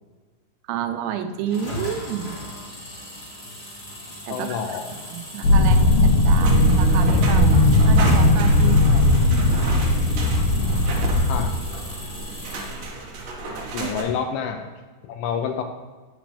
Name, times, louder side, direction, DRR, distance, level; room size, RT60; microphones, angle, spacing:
voice 1, 0.7-2.4 4.3-4.6 5.1-9.0 13.8-13.9, right 8 dB, 80° right, 8 dB, 2.9 m, -30 dB
sound 1, 1.4-12.8, left 1 dB, 25° left, 1.2 m, -37 dB
voice 2, 4.3-5.0 10.1-10.5 11.2-11.6 13.7-14.7 15.1-15.6, left 7 dB, 80° left, 5 dB, 2.9 m, -29 dB
sound 2, 5.4-11.3, left 1 dB, 60° left, 2.1 m, -17 dB
sound 3, 6.4-14.0, right 3 dB, 65° right, 2.0 m, -31 dB
10.0 x 9.2 x 3.3 m, 1.4 s
omnidirectional pair, 5.5 m